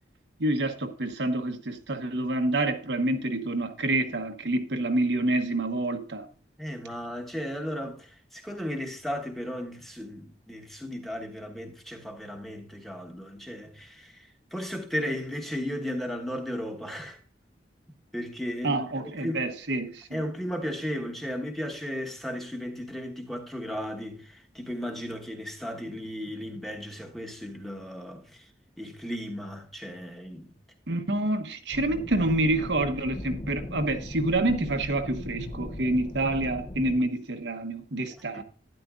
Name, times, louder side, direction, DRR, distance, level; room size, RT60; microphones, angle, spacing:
voice 1, 0.4-6.3 18.6-20.2 30.9-38.4, right 2 dB, 75° right, 1.0 m, -27 dB
voice 2, 6.6-17.2 18.1-18.9 19.2-19.5 20.1-28.4 28.8-30.5 38.3-38.4, equal, ahead, 1.2 m, -35 dB
sound 1, 31.7-37.0, left 1 dB, 30° left, 0.7 m, -38 dB
12.0 x 10.5 x 2.4 m
head